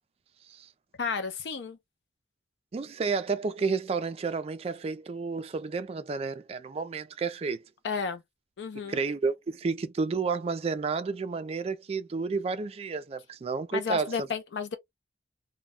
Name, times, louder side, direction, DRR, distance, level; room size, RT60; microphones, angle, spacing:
voice 1, 1.0-1.8 7.8-8.2 8.6-9.0 13.7-14.8, left 5 dB, 85° left, 0.5 m, -32 dB
voice 2, 2.7-7.6 8.8-14.3, right 4 dB, 35° right, 0.3 m, -31 dB
2.1 x 2.1 x 3.5 m
head